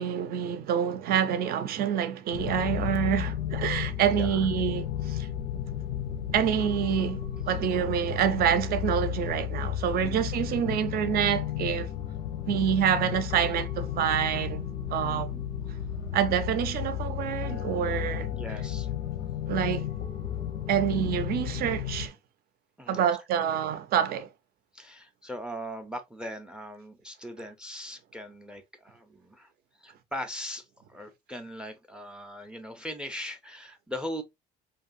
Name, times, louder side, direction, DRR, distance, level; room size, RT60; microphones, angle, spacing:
voice 1, 0.0-5.3 6.3-11.9 12.5-15.3 16.1-18.3 19.5-19.9 20.7-22.1 22.9-24.3, right 9 dB, 65° right, 0.5 m, -27 dB
sound 1, 2.3-22.1, left 10 dB, 85° left, 0.7 m, -33 dB
voice 2, 15.0-15.4 18.3-18.9 22.8-23.1 24.7-29.5 29.8-34.2, equal, 5° right, 0.4 m, -40 dB
2.7 x 2.3 x 2.5 m
cardioid pair, 110°, 17 cm